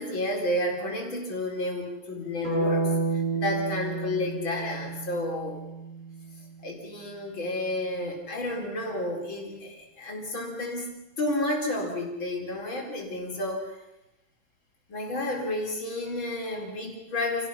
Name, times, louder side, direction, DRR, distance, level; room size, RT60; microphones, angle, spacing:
voice 1, 0.0-5.6 6.6-13.8 14.9-17.5, left 1 dB, 90° left, 0 dB, 5.1 m, -31 dB
sound 1, 2.4-6.5, right 3 dB, 40° right, 6.2 m, -30 dB
29.0 x 18.0 x 5.8 m, 0.92 s
omnidirectional pair, 2.1 m